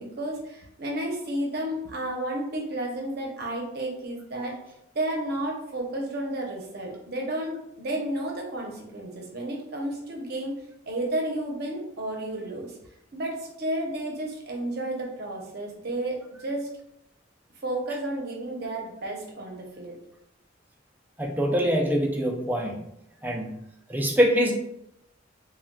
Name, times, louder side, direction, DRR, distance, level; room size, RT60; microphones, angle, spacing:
voice 1, 0.0-4.5 4.9-10.5 10.9-12.8 13.1-16.7 17.6-19.9, right 1 dB, 55° right, 0 dB, 0.7 m, -32 dB
voice 2, 21.2-22.8 23.2-23.5 23.9-24.5, equal, 10° right, 0 dB, 0.4 m, -24 dB
3.7 x 2.2 x 2.2 m, 0.81 s
head